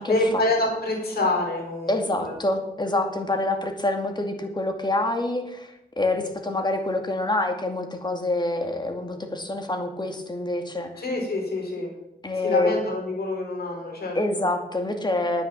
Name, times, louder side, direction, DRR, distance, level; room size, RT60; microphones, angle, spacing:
voice 1, 0.0-2.3 11.0-11.9 12.4-14.4, left 2 dB, 80° left, 0 dB, 4.5 m, -27 dB
voice 2, 1.9-11.0 12.2-12.8 14.1-15.5, left 2 dB, 25° left, 5 dB, 2.3 m, -26 dB
9.6 x 9.5 x 7.3 m, 0.91 s
wide cardioid pair, 80°, 16 cm